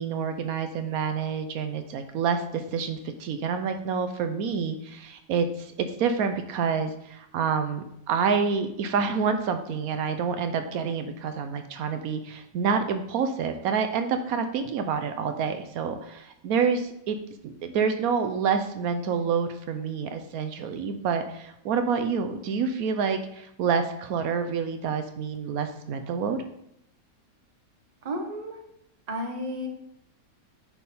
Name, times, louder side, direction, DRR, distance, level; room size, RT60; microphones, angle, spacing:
voice 1, 0.0-17.2 17.4-26.4, right 6 dB, 85° right, 8 dB, 1.1 m, -28 dB
voice 2, 28.0-28.6 29.1-29.7, equal, 30° right, 3 dB, 0.9 m, -32 dB
9.0 x 3.5 x 4.3 m, 0.77 s
omnidirectional pair, 1.5 m